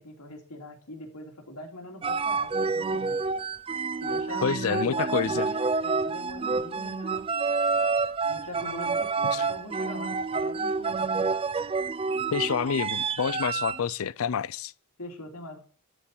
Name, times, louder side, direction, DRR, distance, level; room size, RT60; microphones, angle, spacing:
voice 1, 0.0-3.2 4.0-7.3 8.3-11.2 15.0-15.6, left 1 dB, 90° left, 2.7 m, -42 dB
sound 1, 2.0-13.8, right 4 dB, 25° right, 0.4 m, -28 dB
voice 2, 4.4-5.5 9.3-9.4 12.3-14.7, left 7 dB, 65° left, 0.4 m, -28 dB
13.0 x 4.4 x 8.2 m
head